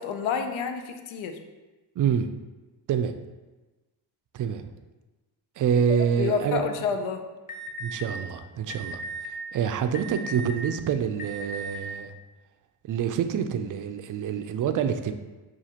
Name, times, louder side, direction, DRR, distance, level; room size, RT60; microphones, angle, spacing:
voice 1, 0.0-1.4 6.2-7.3, left 6 dB, 80° left, 7 dB, 0.6 m, -29 dB
voice 2, 2.0-2.3 2.9-3.1 4.3-4.7 5.6-6.6 7.8-9.0 9.5-12.1 12.8-15.1, right 8 dB, 45° right, 8 dB, 0.4 m, -26 dB
Alarm, 7.5-8.0 8.7-9.3 9.9-10.6 11.2-11.8, right 1 dB, 20° left, 0.7 m, -36 dB
5.9 x 2.5 x 2.8 m, 1.2 s
supercardioid pair, 65°, 46 cm